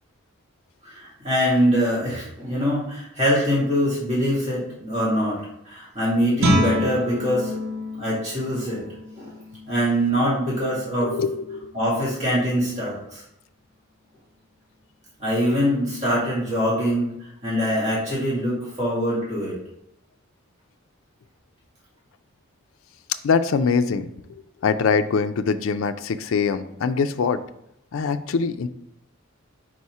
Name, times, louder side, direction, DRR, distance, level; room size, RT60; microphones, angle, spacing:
voice 1, 0.8-7.6 7.9-8.8 9.2-9.3 9.7-11.1 11.7-13.2 15.2-17.1 17.4-19.5, equal, 35° right, -7 dB, 2.4 m, -23 dB
Guitar, 6.4-11.9, equal, 70° right, 1.1 m, -29 dB
voice 2, 11.0-11.7 23.2-27.4 27.9-28.7, left 5 dB, 70° left, 10 dB, 0.4 m, -23 dB
4.9 x 4.2 x 4.7 m, 0.80 s
head